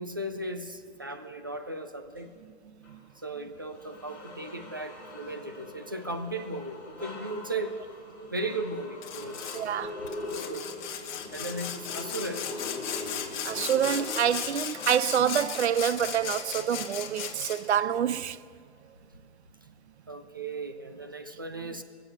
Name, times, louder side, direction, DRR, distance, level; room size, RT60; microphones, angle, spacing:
voice 1, 0.0-2.3 3.2-7.7 8.3-9.8 10.3-10.7 11.3-12.5 20.1-21.8, right 2 dB, 20° right, 0.3 m, -36 dB
sound 1, 2.8-3.0 3.6-15.6, left 2 dB, 5° left, 2.7 m, -42 dB
Sawing, 9.0-9.6 10.1-17.8, left 8 dB, 40° left, 1.4 m, -36 dB
voice 2, 9.5-9.9 13.4-18.4 21.6-21.7, right 9 dB, 70° right, 0.7 m, -27 dB
23.5 x 7.9 x 7.3 m
hypercardioid pair, 160°, 35 cm